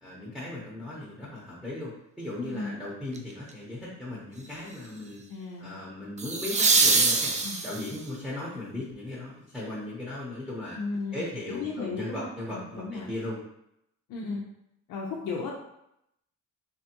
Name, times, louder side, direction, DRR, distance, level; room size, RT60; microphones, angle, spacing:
voice 1, 0.0-5.2 5.6-10.8 11.1-13.4, left 2 dB, ahead, -7 dB, 0.8 m, -37 dB
voice 2, 2.4-2.7 5.3-5.8 7.4-7.6 10.8-13.1 14.1-14.4 14.9-15.5, left 4 dB, 85° left, -4 dB, 0.6 m, -35 dB
sound 1, 3.1-3.5 6.2-8.1 10.9-11.0, right 3 dB, 25° right, 0.4 m, -24 dB
3.4 x 2.2 x 2.8 m, 0.80 s
cardioid pair, 90°, 30 cm